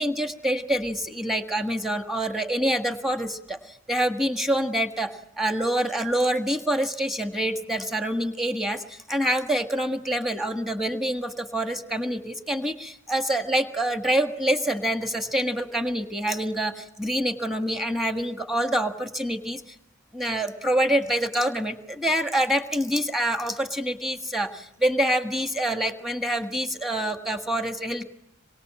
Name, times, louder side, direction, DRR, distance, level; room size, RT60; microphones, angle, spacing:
voice 1, 0.0-3.6 3.9-19.6 20.1-21.7 22.0-28.0, right 1 dB, ahead, 6 dB, 1.6 m, -26 dB
27.0 x 24.0 x 7.6 m, 0.78 s
head